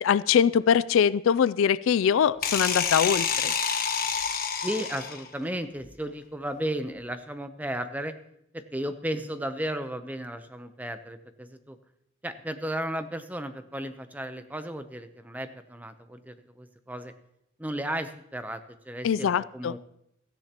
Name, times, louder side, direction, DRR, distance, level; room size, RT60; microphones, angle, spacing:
voice 1, 0.0-3.5 19.0-19.7, left 7 dB, 70° left, 18 dB, 0.3 m, -23 dB
sound 1, 2.4-5.3, left 6 dB, 45° left, 1.2 m, -28 dB
voice 2, 4.6-8.1 8.5-11.8 12.2-17.1 17.6-19.8, right 1 dB, 10° right, 9 dB, 0.6 m, -34 dB
16.5 x 13.5 x 2.9 m, 0.79 s
head